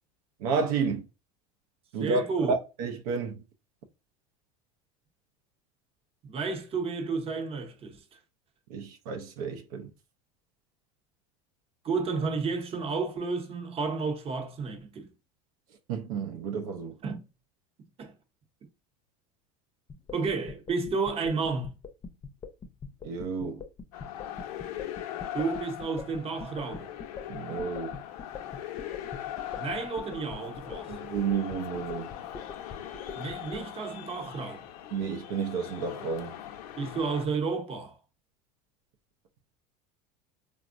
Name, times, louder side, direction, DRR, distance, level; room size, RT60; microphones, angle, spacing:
voice 1, 0.4-1.1 1.9-3.4 8.7-9.9 15.9-17.0 23.0-23.6 27.3-28.0 30.9-32.1 34.9-36.4, right 5 dB, 75° right, 0.5 m, -31 dB
voice 2, 2.0-2.5 6.2-8.2 11.8-15.1 17.0-17.2 18.0-18.1 20.1-21.8 25.3-26.9 29.6-31.0 33.1-34.6 36.8-38.0, right 4 dB, 30° right, 0.7 m, -31 dB
sound 1, 19.9-33.6, left 5 dB, 25° left, 0.5 m, -42 dB
sound 2, 23.9-37.3, left 11 dB, 80° left, 0.5 m, -40 dB
3.5 x 2.0 x 2.5 m
supercardioid pair, 105°, 19 cm